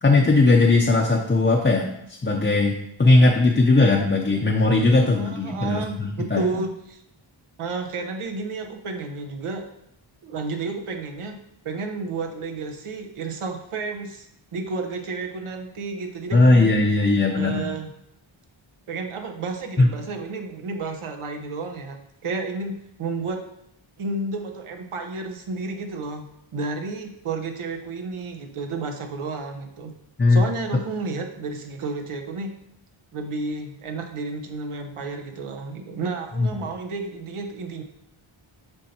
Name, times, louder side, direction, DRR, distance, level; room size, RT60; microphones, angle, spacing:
voice 1, 0.0-1.9 2.2-6.4 16.3-17.7 19.8-19.9 30.2-30.4 36.4-36.5, left 2 dB, 20° left, -1 dB, 0.5 m, -18 dB
voice 2, 5.1-7.0 7.6-9.7 10.2-11.4 11.6-16.7 17.3-17.9 18.9-23.4 24.0-29.9 30.3-32.5 33.1-37.8, right 3 dB, 85° right, 4 dB, 1.0 m, -31 dB
7.0 x 5.6 x 2.8 m, 0.76 s
wide cardioid pair, 130°, 49 cm